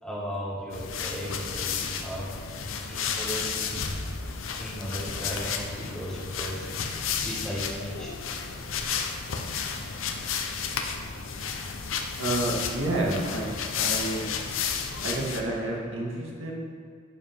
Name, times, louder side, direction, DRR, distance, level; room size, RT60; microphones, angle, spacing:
voice 1, 0.0-2.3 2.9-4.1 4.6-8.2, equal, 5° left, -6 dB, 2.0 m, -36 dB
sound 1, 0.7-15.4, left 6 dB, 90° left, 0.8 m, -32 dB
voice 2, 12.2-13.5 13.8-14.3 15.0-16.5, right 1 dB, 80° right, -3 dB, 2.0 m, -29 dB
11.5 x 7.3 x 3.7 m, 2.2 s
head